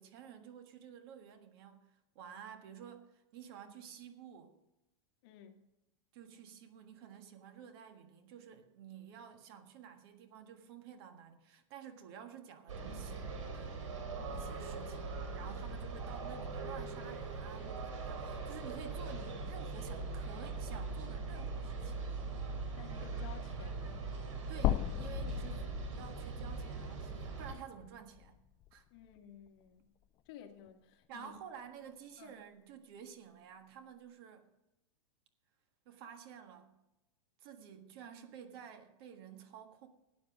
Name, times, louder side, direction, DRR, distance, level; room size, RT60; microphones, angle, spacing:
voice 1, 0.0-1.9 2.2-4.6 6.1-13.8 14.3-22.1 24.5-28.4 28.7-28.9 31.1-34.5 35.9-36.7 37.4-39.9, right 8 dB, 50° right, 7 dB, 1.6 m, -51 dB
voice 2, 5.2-5.6 22.8-24.1 28.9-29.8 30.3-31.4 32.2-32.4, left 9 dB, 50° left, 5 dB, 1.7 m, -54 dB
sound 1, 12.7-27.6, right 4 dB, 90° right, 3.6 m, -41 dB
sound 2, 24.6-28.8 29.2-29.3 30.7-30.8, left 13 dB, 25° left, 0.3 m, -38 dB
13.0 x 9.2 x 5.0 m, 0.95 s
supercardioid pair, 150°, 16 cm